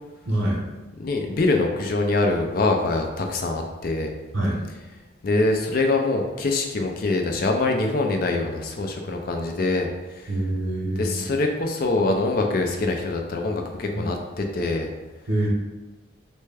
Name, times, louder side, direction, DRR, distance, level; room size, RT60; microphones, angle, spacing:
voice 1, 0.3-0.6 4.3-4.6 10.3-11.2 13.9-14.0 15.3-15.5, right 1 dB, 75° right, -3 dB, 0.8 m, -25 dB
voice 2, 1.0-4.1 5.2-10.3 11.0-14.9, left 2 dB, 45° left, 3 dB, 0.4 m, -24 dB
3.3 x 2.2 x 3.3 m, 1.1 s
head